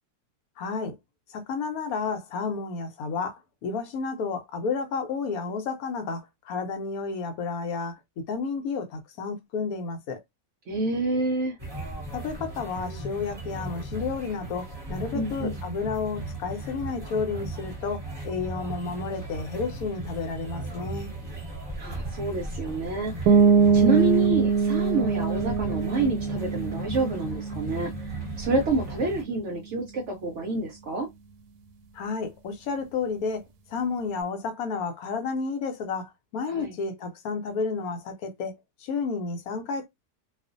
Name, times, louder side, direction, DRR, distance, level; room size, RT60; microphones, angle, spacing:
voice 1, 0.6-1.0 1.3-10.2 12.1-21.1 31.9-33.4 33.7-38.5 38.8-39.9, left 4 dB, 70° left, 1.0 m, -31 dB
voice 2, 10.7-11.6 15.1-15.6 21.8-23.5 23.7-31.1 36.5-36.7, right 2 dB, 65° right, 0.7 m, -28 dB
sound 1, 11.6-29.2, right 1 dB, 20° right, 0.9 m, -37 dB
sound 2, 23.3-28.9, right 5 dB, 80° right, 1.1 m, -23 dB
2.4 x 2.4 x 2.4 m
omnidirectional pair, 1.7 m